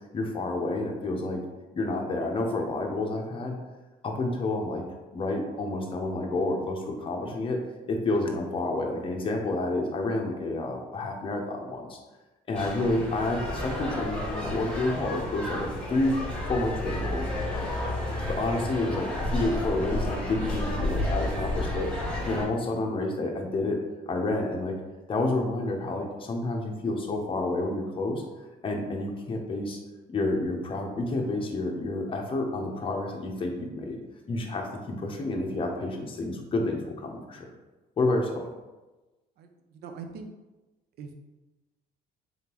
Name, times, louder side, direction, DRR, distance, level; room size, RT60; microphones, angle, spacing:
voice 1, 0.1-1.4 1.7-3.6 4.0-4.8 5.1-7.6 7.9-12.0 12.5-16.1 16.5-17.3 18.3-21.9 22.3-23.8 24.1-24.7 25.1-28.2 28.6-29.8 30.1-34.0 34.3-37.4 38.0-38.5, left 2 dB, 30° left, 1 dB, 0.7 m, -29 dB
sound 1, 12.5-22.4, left 1 dB, 5° left, 1.5 m, -31 dB
voice 2, 39.4-40.3 41.0-41.2, right 5 dB, 70° right, 6 dB, 0.5 m, -42 dB
3.8 x 3.6 x 3.0 m, 1.1 s
cardioid pair, 110°, 17 cm